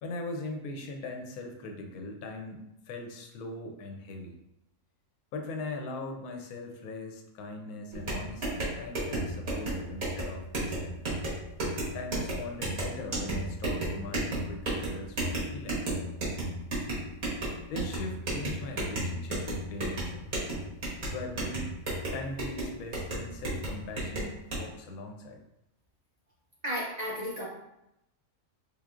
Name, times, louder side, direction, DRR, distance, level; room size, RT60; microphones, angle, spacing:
voice 1, 0.0-4.4 5.3-11.0 11.9-15.8 17.7-20.3 21.0-21.7 22.1-25.4, left 2 dB, 90° left, 3 dB, 1.1 m, -40 dB
sound 1, 7.9-24.6, right 1 dB, 65° right, 1.6 m, -34 dB
voice 2, 26.6-27.5, equal, 45° right, -6 dB, 0.6 m, -33 dB
3.5 x 3.1 x 2.4 m, 0.85 s
omnidirectional pair, 1.5 m